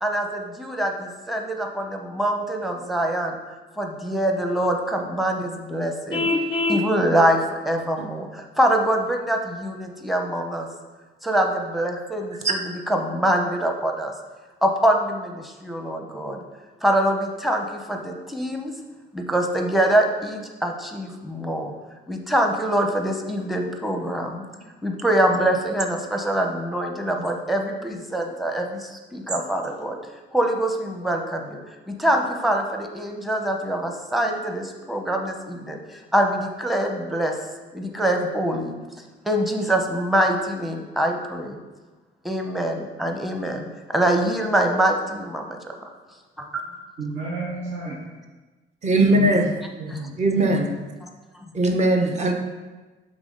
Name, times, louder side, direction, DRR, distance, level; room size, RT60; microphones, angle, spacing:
voice 1, 0.0-3.4 3.8-6.3 6.7-10.7 11.2-14.1 14.6-16.4 16.8-18.7 19.1-21.7 22.1-24.4 24.8-30.0 30.3-31.6 31.9-35.8 36.1-37.3 37.7-38.7 39.3-41.6 42.2-45.7 46.4-46.6 49.9-50.0, right 1 dB, ahead, 2 dB, 0.8 m, -24 dB
Vehicle horn car horn honking, 6.1-6.9, left 2 dB, 30° left, 0.4 m, -23 dB
voice 2, 47.0-48.1 49.0-49.5 49.8-50.7, right 3 dB, 70° right, -7 dB, 1.3 m, -32 dB
voice 3, 48.8-49.4 50.2-50.7 51.5-52.3, right 1 dB, 35° right, 3 dB, 0.9 m, -19 dB
6.9 x 3.7 x 3.8 m, 1.2 s
cardioid pair, 90°, 20 cm